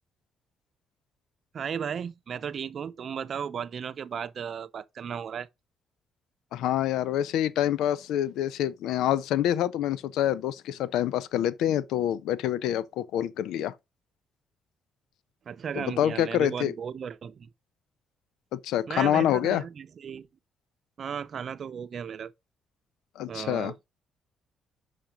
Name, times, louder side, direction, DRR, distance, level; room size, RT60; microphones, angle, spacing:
voice 1, 1.5-5.5 15.5-17.5 18.9-20.3 21.0-22.3 23.3-23.8, right 7 dB, 55° right, 0.7 m, -35 dB
voice 2, 6.5-13.7 15.8-16.7 18.5-19.6 23.2-23.7, left 11 dB, 85° left, 0.5 m, -26 dB
5.8 x 5.1 x 5.2 m
cardioid pair, 90°, 0 cm